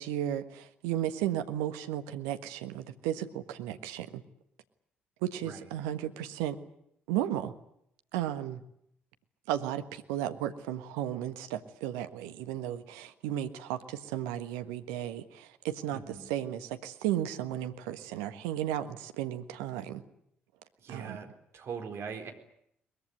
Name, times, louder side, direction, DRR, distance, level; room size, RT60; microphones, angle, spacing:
voice 1, 0.0-4.2 5.2-6.6 7.1-7.5 8.1-8.6 9.5-16.0 16.3-20.0 20.9-21.2, right 11 dB, 70° right, 9 dB, 1.5 m, -34 dB
voice 2, 15.9-16.3 20.8-22.3, right 6 dB, 50° right, 4 dB, 4.1 m, -41 dB
22.5 x 21.5 x 9.6 m, 0.73 s
figure-of-eight pair, 45°, 5 cm